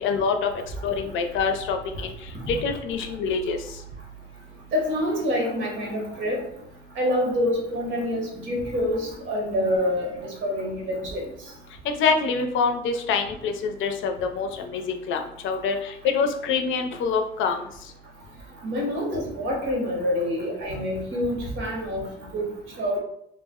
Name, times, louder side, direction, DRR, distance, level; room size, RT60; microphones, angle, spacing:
voice 1, 0.0-3.6 11.8-17.6, left 5 dB, 80° left, 5 dB, 0.4 m, -26 dB
voice 2, 4.7-6.4 7.0-11.2 18.6-22.1 22.3-22.5 22.8-23.0, left 1 dB, 75° right, -1 dB, 1.1 m, -26 dB
2.4 x 2.0 x 3.5 m, 0.72 s
cardioid pair, 90°, 20 cm